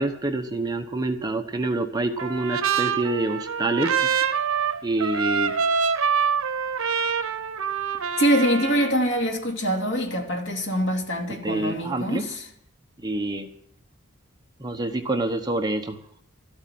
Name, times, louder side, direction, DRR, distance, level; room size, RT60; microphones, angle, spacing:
voice 1, 0.0-4.0 4.8-5.6 11.3-12.2 13.0-13.5 14.6-16.0, right 2 dB, 20° right, 1.0 m, -27 dB
Trumpet, 2.2-8.9, right 6 dB, 80° right, 0.9 m, -25 dB
voice 2, 8.2-12.5, equal, 60° left, 2.7 m, -24 dB
13.5 x 8.1 x 9.4 m
head